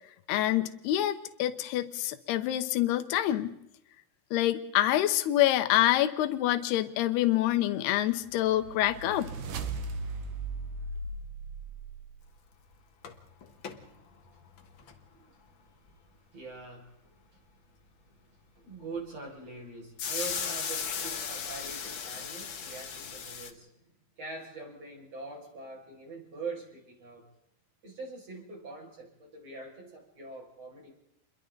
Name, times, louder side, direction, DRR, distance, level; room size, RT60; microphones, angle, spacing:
voice 1, 0.3-3.5 4.3-9.3, left 13 dB, 85° left, 9 dB, 3.0 m, -26 dB
sound 1, 8.0-12.3, right 3 dB, 65° right, 3.1 m, -38 dB
sound 2, 12.3-12.4 12.7-12.8 13.0-13.9 14.4-15.0 15.9-16.0 20.0-23.5, left 6 dB, 55° left, 1.4 m, -36 dB
voice 2, 13.5-14.5 14.8-16.0 16.3-17.4 17.8-27.2 27.8-30.9, right 3 dB, 40° right, 0 dB, 7.0 m, -44 dB
29.5 x 22.5 x 4.0 m, 0.82 s
omnidirectional pair, 4.5 m